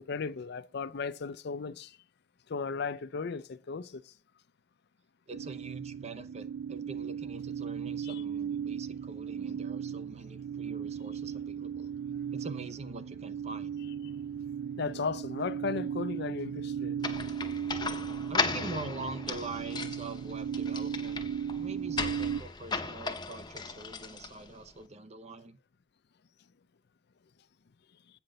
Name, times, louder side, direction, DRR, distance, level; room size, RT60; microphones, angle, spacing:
voice 1, 0.0-2.0 2.5-4.1 8.0-8.2 14.8-17.1, left 5 dB, 60° left, 0.5 m, -36 dB
voice 2, 5.3-11.9 12.3-13.7 18.3-21.3 21.6-25.6, right 3 dB, 35° right, 0.7 m, -44 dB
sound 1, 5.3-22.4, right 8 dB, 70° right, 0.3 m, -37 dB
sound 2, 17.0-24.7, left 4 dB, 20° left, 0.8 m, -36 dB
8.9 x 5.7 x 6.6 m
head